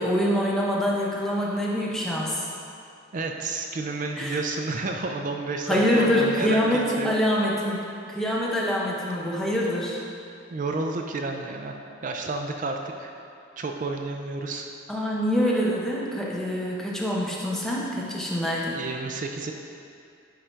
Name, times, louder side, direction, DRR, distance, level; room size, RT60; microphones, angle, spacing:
voice 1, 0.0-2.5 4.2-4.4 5.7-10.0 14.9-18.8, equal, ahead, -5 dB, 0.9 m, -25 dB
voice 2, 3.1-7.1 10.5-11.8 12.0-13.1 13.6-14.7 18.7-19.5, right 3 dB, 40° right, 3 dB, 0.4 m, -30 dB
9.8 x 3.8 x 4.4 m, 2.5 s
head